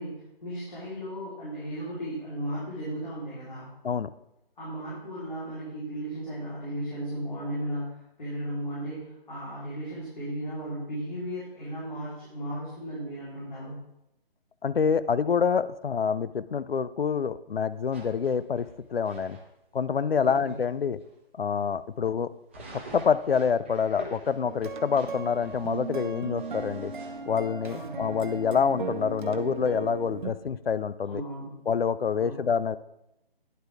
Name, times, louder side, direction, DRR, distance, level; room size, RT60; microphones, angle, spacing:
voice 1, 0.0-3.7 4.6-13.8 20.2-20.6 27.7-28.0 31.1-31.5 32.2-32.3, right 1 dB, 50° left, -9 dB, 3.9 m, -35 dB
voice 2, 14.6-19.4 19.7-21.0 21.4-22.3 22.7-26.9 27.3-31.2 31.7-32.8, left 6 dB, 70° left, 15 dB, 0.6 m, -27 dB
sound 1, 17.9-19.4 20.0-20.1 20.5-20.6 21.0-21.1 22.5-27.2, right 2 dB, 10° right, 0.7 m, -47 dB
sound 2, 24.5-30.3, right 4 dB, 55° right, 0.8 m, -37 dB
10.5 x 8.2 x 3.5 m, 0.84 s
figure-of-eight pair, 150°, 30 cm